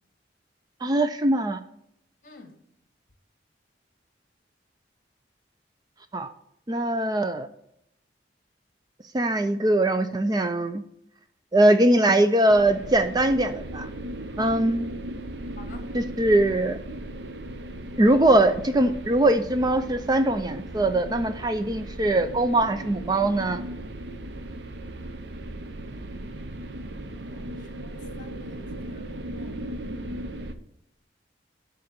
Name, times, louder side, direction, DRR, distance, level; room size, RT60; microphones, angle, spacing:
voice 1, 0.8-1.6 6.1-6.3 6.7-7.5 9.1-10.8 11.5-13.9 14.4-14.8 15.9-16.8 18.0-23.6, right 1 dB, 20° right, 10 dB, 0.4 m, -21 dB
voice 2, 2.2-2.6 15.6-15.9 27.1-29.8, left 3 dB, 45° left, 6 dB, 1.7 m, -50 dB
sound 1, 12.5-30.5, right 1 dB, 70° right, 0.7 m, -37 dB
11.5 x 3.8 x 6.7 m, 0.76 s
head